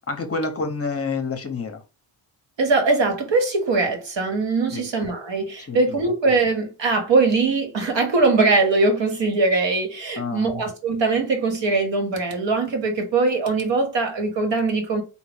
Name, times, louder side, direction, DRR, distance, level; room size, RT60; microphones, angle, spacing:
voice 1, 0.1-1.8 4.7-4.9 5.7-6.0 10.2-10.6, left 4 dB, 30° left, 0.9 m, -28 dB
voice 2, 2.6-15.0, right 3 dB, 60° right, 1.4 m, -21 dB
3.8 x 2.4 x 3.4 m
cardioid pair, 95°, 50 cm